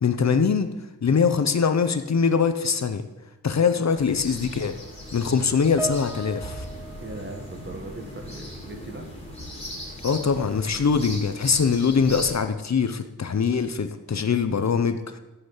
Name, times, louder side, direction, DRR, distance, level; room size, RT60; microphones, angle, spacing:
voice 1, 0.0-0.7 1.0-3.0 3.4-4.8 5.1-6.6 10.0-15.2, left 6 dB, 50° left, 9 dB, 0.9 m, -23 dB
sound 1, 4.0-12.4, equal, 15° left, 4.0 m, -39 dB
Piano, 5.8-8.4 8.7-9.0 9.8-9.9, right 3 dB, 5° right, 0.7 m, -38 dB
voice 2, 7.0-9.1, right 2 dB, 30° right, 4 dB, 1.8 m, -39 dB
14.5 x 8.0 x 8.2 m, 1.1 s
wide cardioid pair, 160°, 35 cm